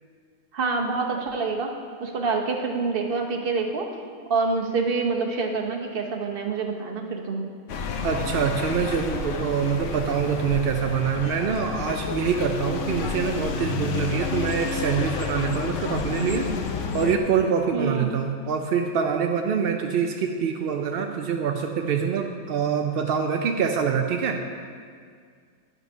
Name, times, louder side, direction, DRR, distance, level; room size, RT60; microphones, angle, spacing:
voice 1, 0.5-1.7 2.0-3.9 4.3-7.4 17.7-18.1, right 4 dB, 45° right, 2 dB, 1.0 m, -26 dB
sound 1, 7.7-17.2, left 6 dB, 65° left, 1.0 m, -30 dB
voice 2, 8.0-24.4, right 6 dB, 65° right, 4 dB, 0.6 m, -25 dB
11.0 x 5.5 x 5.4 m, 2.1 s
omnidirectional pair, 1.5 m